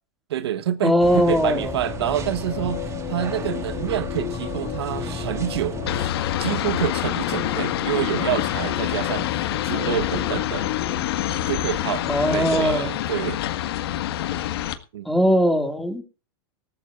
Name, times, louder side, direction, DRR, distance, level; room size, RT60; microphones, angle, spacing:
voice 1, 0.3-6.1 6.4-10.7 11.5-13.4 14.9-15.1, right 11 dB, 75° right, 1.2 m, -27 dB
voice 2, 0.8-1.7 12.1-12.9 15.1-16.0, equal, ahead, 2.3 m, -20 dB
sound 1, 1.0-6.0, right 4 dB, 20° right, 1.8 m, -34 dB
sound 2, 1.1-12.5, left 14 dB, 50° left, 2.1 m, -33 dB
sound 3, 5.9-14.7, left 12 dB, 70° left, 1.7 m, -26 dB
18.5 x 14.5 x 2.5 m
hypercardioid pair, 120°, 14 cm